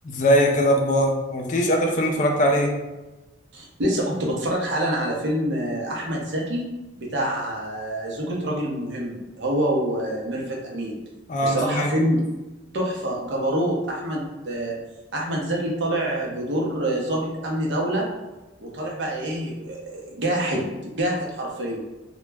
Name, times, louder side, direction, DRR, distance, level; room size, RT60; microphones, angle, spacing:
voice 1, 0.0-2.8 11.3-11.9, equal, 40° left, 2 dB, 0.4 m, -21 dB
voice 2, 3.5-6.7 7.0-11.0 11.4-12.3 12.7-14.8 15.1-18.1 18.6-21.8, right 1 dB, 70° right, -2 dB, 0.6 m, -26 dB
2.2 x 2.0 x 3.3 m, 1.1 s
head